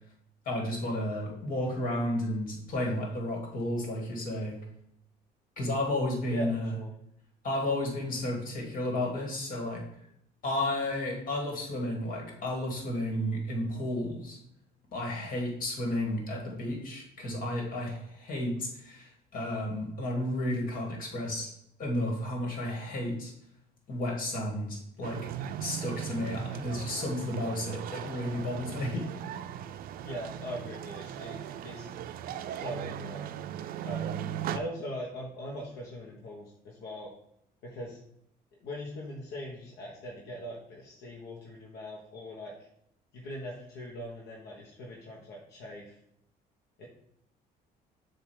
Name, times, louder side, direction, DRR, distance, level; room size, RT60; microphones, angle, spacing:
voice 1, 0.5-4.6 5.6-6.8 7.4-9.8 10.4-14.4 14.9-21.5 21.8-23.3 23.9-25.2 25.6-29.1, left 1 dB, 55° left, 0 dB, 2.0 m, -32 dB
voice 2, 6.3-6.9 30.0-31.9 32.5-33.3 33.8-34.2 34.5-37.1 37.6-38.0 38.6-42.5 43.1-45.9 46.8-46.9, equal, 75° left, -3 dB, 1.2 m, -41 dB
sound 1, 25.0-34.6, right 10 dB, 60° right, 0.4 m, -38 dB
7.2 x 2.8 x 4.9 m, 0.74 s
cardioid pair, 110°, 17 cm